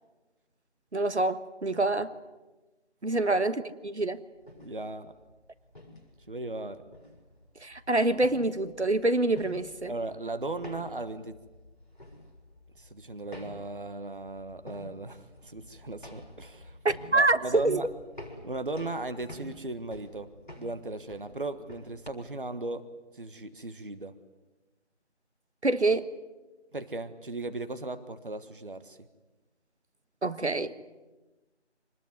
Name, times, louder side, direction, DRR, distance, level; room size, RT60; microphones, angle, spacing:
voice 1, 0.9-2.1 3.0-4.2 7.6-9.9 16.8-17.8 25.6-26.1 30.2-30.7, right 2 dB, 75° right, 1.5 m, -26 dB
sound 1, 4.3-22.1, left 1 dB, 45° left, 6.3 m, -49 dB
voice 2, 4.6-5.1 6.3-6.8 9.9-11.4 12.7-16.8 17.1-17.9 18.4-20.3 20.6-22.9 23.1-24.1 26.7-29.0, right 2 dB, 50° right, 1.3 m, -37 dB
25.5 x 20.5 x 9.5 m
figure-of-eight pair, 170°, 35 cm